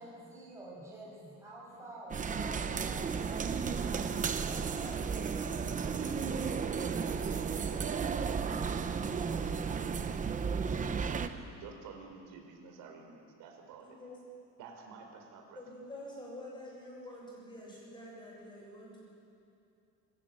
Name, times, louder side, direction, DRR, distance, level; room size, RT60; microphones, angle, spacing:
voice 1, 0.0-3.4 4.4-5.0, right 1 dB, 10° right, -6 dB, 6.5 m, -48 dB
sound 1, 2.1-11.3, right 6 dB, 25° right, 0.8 m, -33 dB
voice 2, 4.3-4.7 5.8-6.5 6.9-8.8 9.2-14.0 14.6-15.7, right 5 dB, 85° right, 3 dB, 4.1 m, -52 dB
voice 3, 13.8-14.2 15.6-19.1, left 1 dB, 15° left, -4 dB, 7.2 m, -47 dB
25.0 x 14.0 x 8.9 m, 2.6 s
cardioid pair, 165°, 31 cm